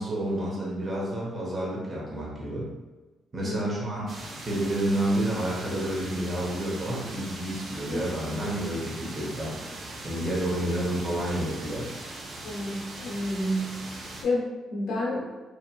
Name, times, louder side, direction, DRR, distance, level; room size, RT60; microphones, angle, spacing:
voice 1, 0.0-2.7 3.3-4.0 4.4-11.9, right 1 dB, 35° right, -4 dB, 0.9 m, -30 dB
voice 2, 3.4-3.8 7.9-8.1 12.4-13.8 14.2-15.4, left 1 dB, 75° left, -3 dB, 0.8 m, -30 dB
sound 1, 4.1-14.2, right 2 dB, 50° right, 0.5 m, -40 dB
2.8 x 2.4 x 2.3 m, 1.2 s
cardioid pair, 90°, 0 cm